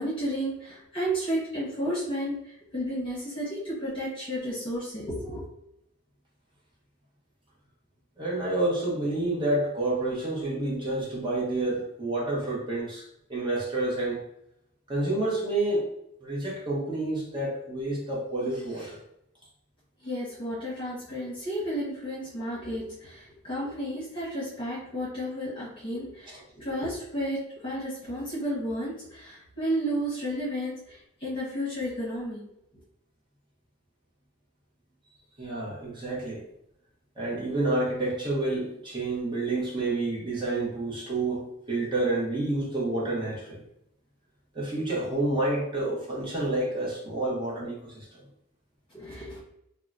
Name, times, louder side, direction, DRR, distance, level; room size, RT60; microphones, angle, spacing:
voice 1, 0.0-5.4 20.0-32.4 48.9-49.4, equal, 25° left, -9 dB, 1.0 m, -32 dB
voice 2, 8.2-14.2 14.9-15.9 16.2-19.0 26.3-26.4 35.4-36.4 37.2-43.6 44.5-48.2, right 2 dB, 20° right, -4 dB, 0.8 m, -29 dB
2.8 x 2.0 x 3.7 m, 0.80 s
head